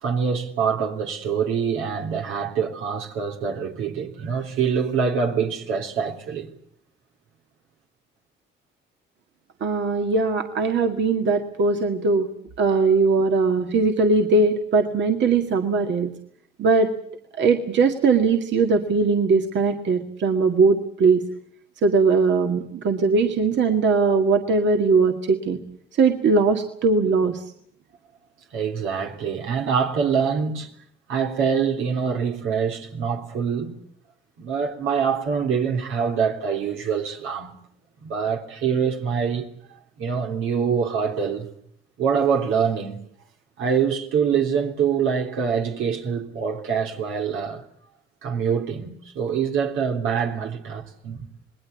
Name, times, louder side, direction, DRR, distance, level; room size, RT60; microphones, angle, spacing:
voice 1, 0.0-6.5 28.5-30.7 31.1-33.7 34.4-37.6 38.0-39.5 40.0-41.5 42.0-43.0 43.6-47.6 48.2-51.3, right 6 dB, 90° right, 3.4 m, -25 dB
voice 2, 9.6-12.3 12.6-16.1 16.6-16.9 17.4-21.2 21.8-25.6 26.0-27.4, right 4 dB, 65° right, 2.0 m, -20 dB
27.0 x 20.5 x 8.3 m
cardioid pair, 90°, 20 cm